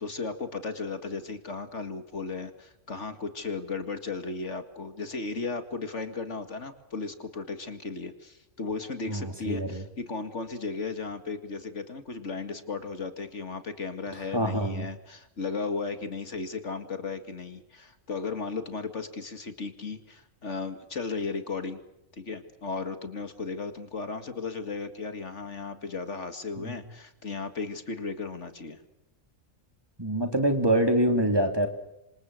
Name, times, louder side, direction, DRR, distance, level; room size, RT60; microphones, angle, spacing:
voice 1, 0.0-21.8 22.1-28.8, left 4 dB, 60° left, 9 dB, 2.3 m, -35 dB
voice 2, 9.1-9.8 14.3-14.9 26.6-26.7 30.0-31.7, right 1 dB, 20° right, 5 dB, 3.2 m, -25 dB
27.0 x 26.5 x 6.4 m, 0.88 s
omnidirectional pair, 1.4 m